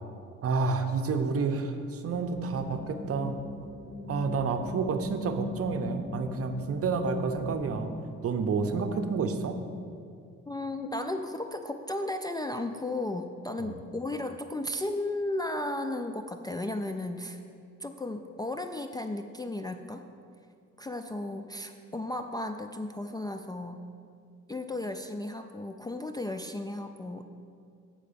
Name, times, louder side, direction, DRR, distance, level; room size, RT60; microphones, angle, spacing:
voice 1, 0.4-3.4 4.1-7.9 8.2-9.6 13.6-13.8, right 4 dB, 50° right, 7 dB, 0.7 m, -29 dB
sound 1, 2.1-7.8, left 2 dB, 5° right, 1.9 m, -42 dB
voice 2, 10.5-17.4 17.8-20.0 20.8-23.9 24.5-27.2, left 1 dB, 15° left, 6 dB, 0.3 m, -34 dB
7.6 x 5.0 x 6.8 m, 2.4 s
cardioid pair, 90°, 30 cm